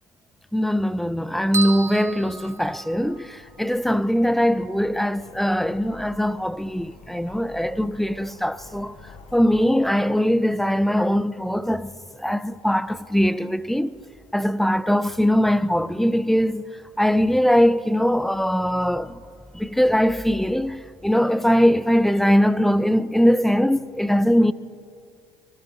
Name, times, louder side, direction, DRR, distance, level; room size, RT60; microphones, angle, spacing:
voice 1, 0.5-9.0 9.3-14.0 14.3-16.7 17.0-19.2 19.5-24.5, equal, ahead, 0.5 m, -21 dB
sound 1, 1.5-3.3, right 4 dB, 30° right, 1.2 m, -32 dB
sound 2, 2.4-9.7, left 3 dB, 55° left, 2.0 m, -48 dB
23.5 x 13.5 x 4.0 m
supercardioid pair, 80°, 10 cm